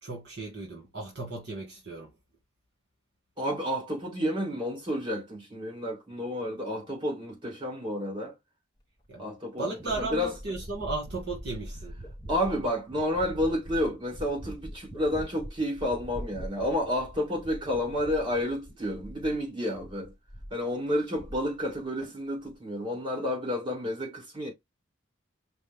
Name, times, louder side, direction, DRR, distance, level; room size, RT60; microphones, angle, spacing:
voice 1, 0.0-2.1 9.1-9.3 9.6-11.9, right 3 dB, 55° right, 1.6 m, -35 dB
voice 2, 3.4-8.4 9.2-10.3 12.3-20.1 20.5-24.5, left 1 dB, 25° right, 2.3 m, -30 dB
sound 1, 9.0-9.1 9.8-19.5 19.8-20.6 20.9-21.8 22.0-22.5, equal, 20° left, 1.3 m, -43 dB
5.1 x 2.2 x 3.6 m
head